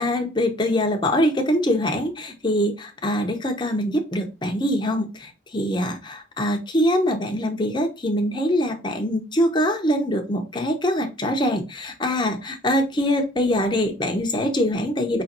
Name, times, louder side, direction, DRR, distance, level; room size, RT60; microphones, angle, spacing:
voice 1, 0.0-15.2, equal, 25° left, 4 dB, 0.9 m, -23 dB
5.3 x 3.2 x 2.9 m, 0.30 s
head